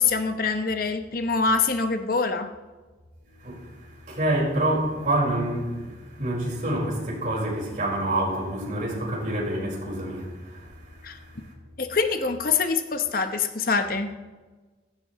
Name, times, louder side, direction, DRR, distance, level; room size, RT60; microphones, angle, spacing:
voice 1, 0.0-2.5 11.0-11.2 11.8-14.1, left 4 dB, 55° left, 0.9 m, -24 dB
voice 2, 3.4-11.3, right 1 dB, 45° right, 4.8 m, -27 dB
15.5 x 15.0 x 3.1 m
head